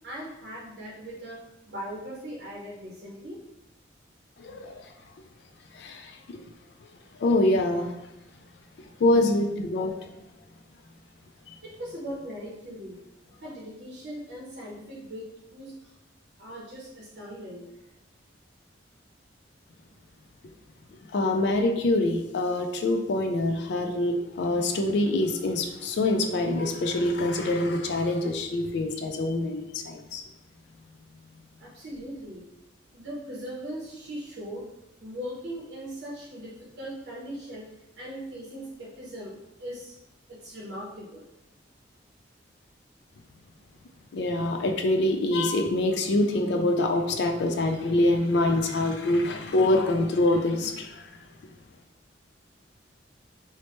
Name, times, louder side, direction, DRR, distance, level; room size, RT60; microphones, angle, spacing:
voice 1, 0.0-1.4 1.7-3.4 11.6-13.0 13.4-15.9 16.4-17.6 31.6-32.4 32.9-34.7 35.0-37.7 38.0-39.3 39.6-39.9 40.4-41.2, equal, 60° right, -5 dB, 0.6 m, -39 dB
voice 2, 4.4-4.8 5.7-6.4 7.2-7.9 9.0-9.9 11.5-11.6 21.1-30.2 44.1-51.1, left 2 dB, 60° left, 5 dB, 0.3 m, -25 dB
3.1 x 2.1 x 2.9 m, 0.91 s
head